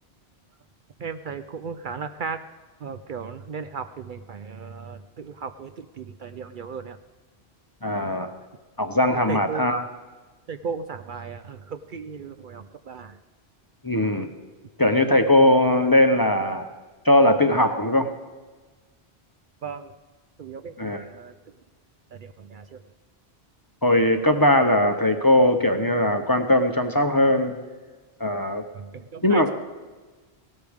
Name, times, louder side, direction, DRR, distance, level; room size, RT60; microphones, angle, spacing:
voice 1, 1.0-2.4 2.8-7.0 9.3-9.7 10.5-13.1 19.6-19.9 20.4-21.3 22.2-22.8 28.7-29.5, right 5 dB, 60° right, 9 dB, 0.7 m, -36 dB
voice 2, 7.8-8.3 8.8-9.9 13.8-14.3 14.8-16.7 17.0-18.1 20.8-21.0 23.8-27.6 28.2-28.6 29.2-29.5, left 1 dB, 25° left, 6 dB, 0.7 m, -20 dB
17.0 x 13.0 x 3.5 m, 1.3 s
omnidirectional pair, 1.1 m